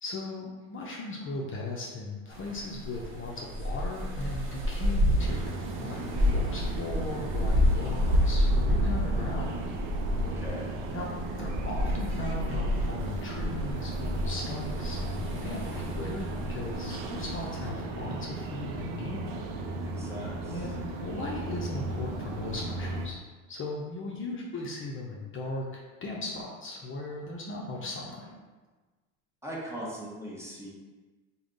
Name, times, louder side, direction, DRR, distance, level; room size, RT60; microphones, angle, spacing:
voice 1, 0.0-5.5 5.8-9.6 10.9-19.3 20.5-23.2 23.5-28.3, left 2 dB, 35° left, -2 dB, 0.6 m, -38 dB
sound 1, 2.3-17.7, left 1 dB, 35° right, 0.9 m, -30 dB
sound 2, 5.2-23.1, right 2 dB, 70° right, 0.6 m, -36 dB
voice 2, 10.2-10.7 19.7-20.6 29.4-30.7, equal, 10° right, -5 dB, 1.0 m, -40 dB
3.4 x 2.2 x 3.8 m, 1.3 s
supercardioid pair, 85°, 34 cm